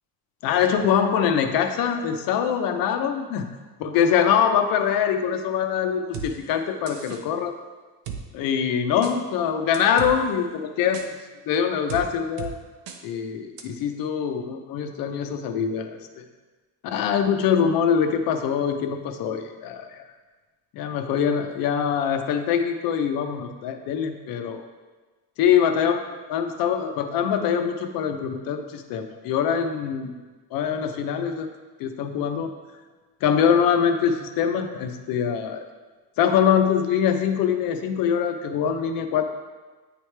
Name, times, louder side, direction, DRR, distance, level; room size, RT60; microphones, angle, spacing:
voice 1, 0.4-3.5 3.8-7.5 8.3-11.0 11.5-12.5 13.0-16.2 16.8-20.0 20.7-24.6 25.4-26.0 26.3-30.1 30.5-31.5 31.8-32.5 33.2-35.6 36.2-39.3, left 8 dB, 55° left, 6 dB, 0.6 m, -23 dB
sound 1, 6.1-6.3 6.9-7.2 8.1-8.2 9.0-9.1 9.7-10.1 10.9-11.1 11.9-12.0 12.4-12.5 12.9-13.0 13.6-13.7, right 7 dB, 80° right, 0.8 m, -34 dB
9.5 x 3.2 x 3.2 m, 1.3 s
cardioid pair, 170°, 42 cm